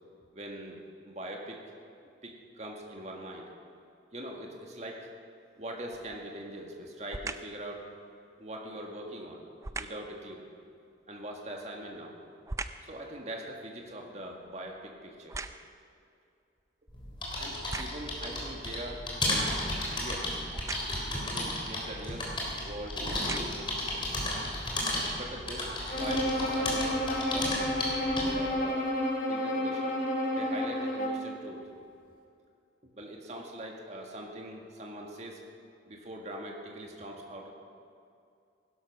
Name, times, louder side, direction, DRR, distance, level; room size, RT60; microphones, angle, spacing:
voice 1, 0.3-1.6 2.2-3.5 4.1-5.1 5.6-7.8 8.4-9.4 9.8-10.4 11.1-12.1 12.8-15.4 17.4-19.5 19.8-20.3 21.1-24.2 24.8-25.7 25.9-28.9 29.3-29.9 30.4-31.6 32.9-35.4 35.9-37.5, right 1 dB, 35° right, 0 dB, 1.8 m, -42 dB
sound 1, 6.0-6.3 7.1-7.6 9.6-10.1 11.5-13.0 13.4-15.9 16.6-16.7 17.5-18.2 20.5-21.1 22.1-22.3 22.9-23.8 24.4-24.5, right 3 dB, 15° right, 0.4 m, -41 dB
sound 2, 16.9-28.5, left 1 dB, 25° left, 3.2 m, -34 dB
Bowed string instrument, 25.9-31.3, left 1 dB, 45° left, 2.2 m, -30 dB
16.0 x 12.0 x 6.0 m, 2.5 s
head